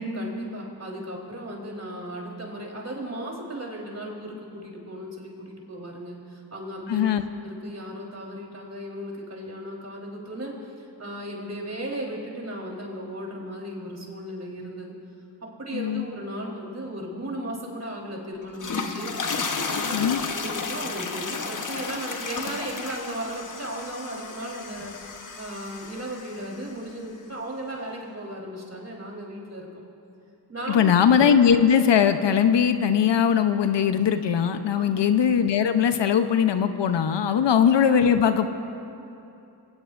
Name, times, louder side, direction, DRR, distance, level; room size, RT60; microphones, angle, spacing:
voice 1, 0.1-7.1 7.4-14.9 15.4-19.1 19.7-29.8 30.5-31.0 34.7-35.0 38.4-38.5, right 1 dB, 35° right, -2 dB, 3.9 m, -36 dB
voice 2, 6.9-7.2 15.7-16.0 19.9-20.2 30.7-38.5, left 8 dB, 70° left, 8 dB, 0.8 m, -20 dB
sound 1, 18.4-26.8, left 4 dB, 45° left, 1.1 m, -33 dB
23.0 x 18.0 x 2.6 m, 2.8 s
cardioid pair, 75°, 44 cm